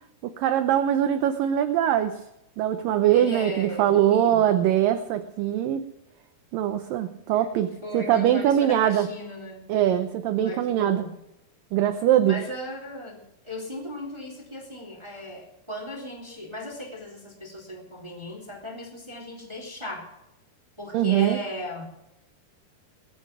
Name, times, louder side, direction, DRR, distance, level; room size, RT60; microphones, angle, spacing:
voice 1, 0.2-2.2 2.6-5.8 6.5-9.1 9.7-11.0 11.7-12.4 20.9-21.4, right 11 dB, 75° right, 8 dB, 2.2 m, -22 dB
voice 2, 3.1-4.5 7.1-7.5 7.8-9.6 10.4-11.2 12.2-13.2 13.4-20.1 20.8-21.8, left 1 dB, 5° right, 0 dB, 3.1 m, -37 dB
21.5 x 9.3 x 6.1 m, 0.88 s
omnidirectional pair, 4.6 m